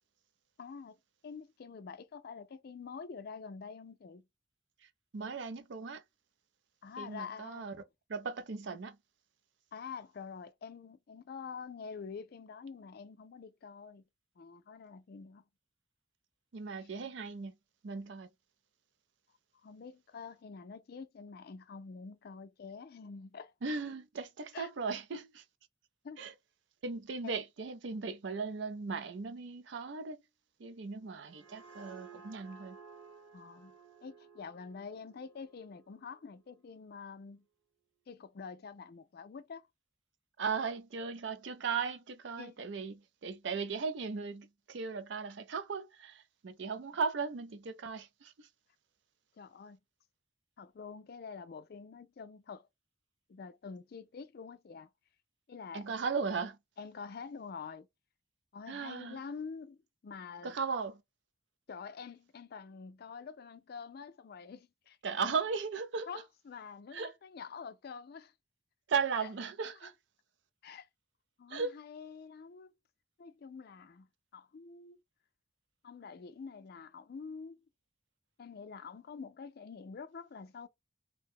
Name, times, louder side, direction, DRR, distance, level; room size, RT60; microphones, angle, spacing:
voice 1, 0.6-1.0 1.2-4.2 6.8-7.7 9.7-14.0 14.4-15.4 19.6-23.5 24.5-24.7 26.0-26.2 27.2-27.4 33.3-33.7 34.0-37.4 38.1-39.7 42.4-42.6 49.3-49.8 50.6-52.7 53.3-54.9 55.5-55.8 56.8-57.9 58.5-60.5 61.7-65.0 65.2-65.3 66.1-68.3 69.2-69.3 70.6-70.9 71.4-72.7 73.2-74.1 74.3-75.0 75.8-77.6 78.4-80.7, left 5 dB, 55° left, 0.4 m, -47 dB
voice 2, 4.8-6.0 7.0-7.8 8.1-9.0 16.5-17.6 17.8-18.3 23.6-25.4 26.2-26.3 26.8-30.2 30.6-32.8 40.4-48.5 55.7-56.6 58.7-59.2 60.4-61.0 65.0-66.2 66.9-67.1 68.9-69.9 71.5-71.7, right 5 dB, 70° right, 0.5 m, -37 dB
sound 1, 31.0-36.4, right 5 dB, 90° right, 1.2 m, -56 dB
2.6 x 2.2 x 3.5 m
head